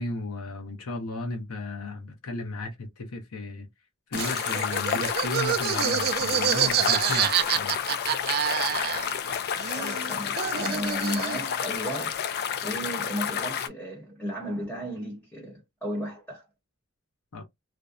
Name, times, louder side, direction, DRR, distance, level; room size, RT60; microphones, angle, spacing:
voice 1, 0.0-3.7 4.1-7.8 17.3-17.4, left 2 dB, 85° left, 0.7 m, -35 dB
sound 1, 4.1-13.7, left 8 dB, 45° left, 0.3 m, -30 dB
Laughter, 4.1-9.3 9.6-11.5, right 9 dB, 45° right, 0.3 m, -27 dB
voice 2, 9.7-12.3 12.6-16.4, equal, 5° left, 0.9 m, -34 dB
2.6 x 2.1 x 2.4 m
head